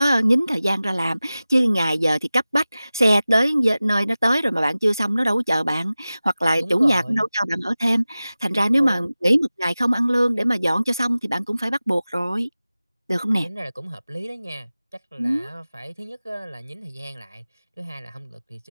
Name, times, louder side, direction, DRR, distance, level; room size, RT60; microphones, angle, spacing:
voice 1, 0.0-12.5 13.1-13.5 15.2-15.5, right 1 dB, 65° right, 1.7 m, -21 dB
voice 2, 6.5-7.3 8.5-9.1 13.4-18.7, right 1 dB, 40° right, 5.7 m, -35 dB
figure-of-eight pair, 180°, 2 cm